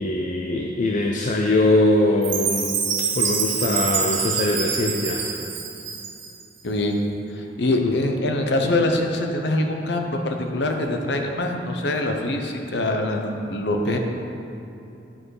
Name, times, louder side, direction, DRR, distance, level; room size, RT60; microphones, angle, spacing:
voice 1, 0.0-2.8 3.1-5.3 7.8-8.0, left 2 dB, 45° left, 1 dB, 0.5 m, -22 dB
Chime, 2.2-6.4, right 6 dB, 90° right, 1.0 m, -26 dB
voice 2, 6.6-7.0 7.4-14.0, left 1 dB, 65° left, 3 dB, 0.8 m, -24 dB
10.0 x 5.3 x 4.8 m, 2.8 s
head